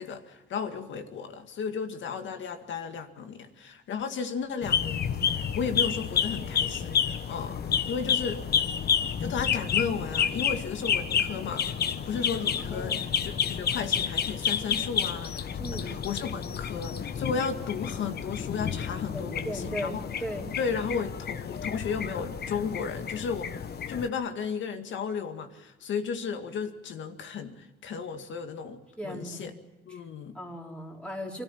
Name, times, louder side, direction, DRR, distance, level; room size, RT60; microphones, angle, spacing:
voice 1, 0.0-8.4 9.2-11.7 12.1-20.1 20.6-23.5 23.9-29.5 29.9-30.4, left 6 dB, 70° left, 7 dB, 2.1 m, -34 dB
sound 1, 4.6-24.1, left 7 dB, 55° left, 1.2 m, -30 dB
voice 2, 12.7-13.1 15.6-16.0 19.1-20.5 29.0-29.4 29.9-30.0 30.3-31.4, equal, 5° left, -1 dB, 4.4 m, -37 dB
24.5 x 13.5 x 9.9 m, 1.1 s
cardioid pair, 90°, 20 cm